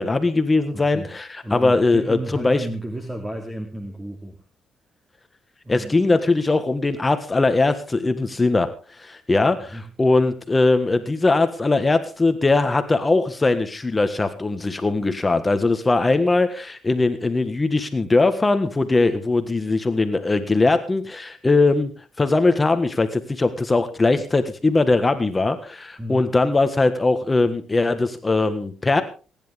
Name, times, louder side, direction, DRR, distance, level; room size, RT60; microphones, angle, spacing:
voice 1, 0.0-2.7 5.7-8.7 9.0-21.9 22.2-29.0, left 3 dB, 20° left, 9 dB, 1.5 m, -20 dB
voice 2, 0.7-1.1 1.4-4.4 5.6-5.9 9.7-9.9 26.0-26.3, right 1 dB, 15° right, 2 dB, 2.9 m, -33 dB
27.0 x 10.5 x 3.6 m, 0.36 s
cardioid pair, 90°, 0 cm